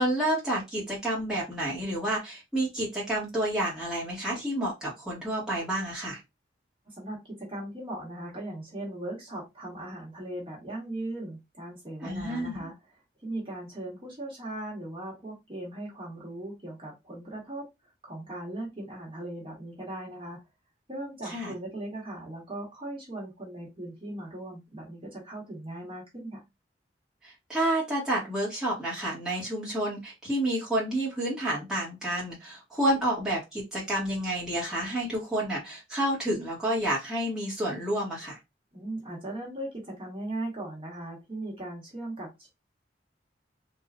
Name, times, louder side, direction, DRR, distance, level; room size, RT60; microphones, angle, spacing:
voice 1, 0.0-6.2 12.0-12.7 21.3-21.5 27.2-38.4, right 1 dB, 5° right, -7 dB, 1.2 m, -29 dB
voice 2, 6.8-12.7 13.2-17.7 18.0-20.4 20.9-26.4 38.7-42.5, right 1 dB, 30° right, -4 dB, 1.2 m, -38 dB
3.3 x 2.4 x 2.4 m, 0.21 s
head